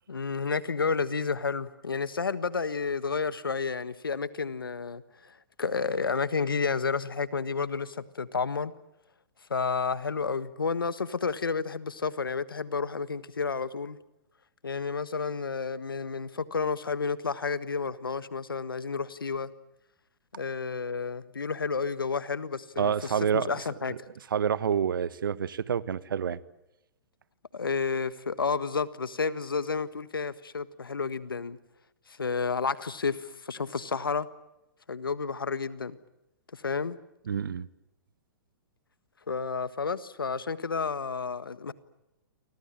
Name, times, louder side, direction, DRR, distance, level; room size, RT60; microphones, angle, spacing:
voice 1, 0.1-8.7 9.5-14.0 14.6-19.5 20.3-24.0 27.5-31.6 32.2-34.3 34.9-36.0 36.5-37.0 39.3-41.7, left 5 dB, 90° left, 1.5 m, -31 dB
voice 2, 22.8-23.5 24.3-26.4 37.3-37.7, right 8 dB, 75° right, 1.3 m, -28 dB
29.5 x 24.5 x 7.6 m
hypercardioid pair, 120°, 11 cm